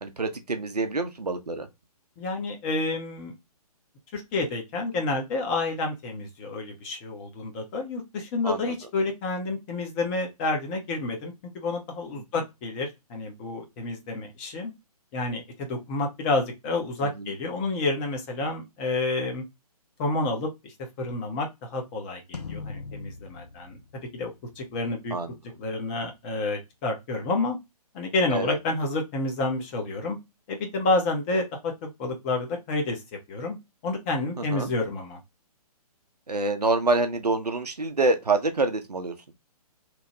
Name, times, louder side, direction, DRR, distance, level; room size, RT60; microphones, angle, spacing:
voice 1, 0.0-1.7 8.4-8.6 17.0-17.3 25.1-25.3 28.3-28.5 34.4-34.7 36.3-39.1, right 3 dB, 80° right, 0.6 m, -26 dB
voice 2, 2.2-3.3 4.1-14.7 15.1-19.4 20.0-25.2 25.6-27.6 27.9-30.2 30.5-33.0 33.3-33.6 33.8-35.2, left 2 dB, 15° left, 0.5 m, -29 dB
sound 1, 22.3-24.9, left 4 dB, 90° left, 0.5 m, -41 dB
3.0 x 2.0 x 2.8 m
figure-of-eight pair, 130°, 20 cm